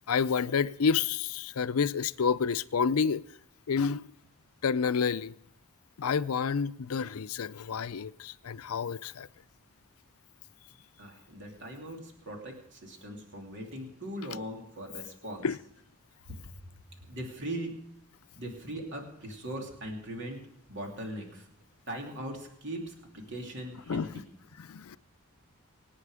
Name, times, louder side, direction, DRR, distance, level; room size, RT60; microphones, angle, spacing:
voice 1, 0.1-3.2 3.7-4.0 4.6-5.3 6.0-9.3 15.4-15.6 23.9-24.1 24.6-25.0, left 6 dB, 75° left, 0.5 m, -29 dB
voice 2, 11.0-15.5 16.3-16.5 17.1-17.8 18.4-20.4 20.7-21.5 21.9-24.2, right 1 dB, 55° right, 3.1 m, -40 dB
25.0 x 9.1 x 5.0 m
head